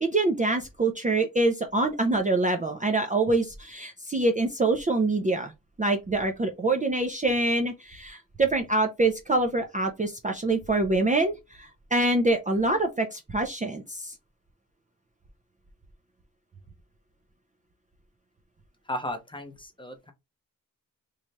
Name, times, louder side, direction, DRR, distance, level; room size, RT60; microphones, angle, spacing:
voice 1, 0.0-5.5 5.8-14.1, right 2 dB, 25° right, 0.5 m, -25 dB
voice 2, 18.9-20.1, left 1 dB, 15° left, 0.7 m, -35 dB
3.2 x 2.3 x 4.0 m
wide cardioid pair, 155°, 34 cm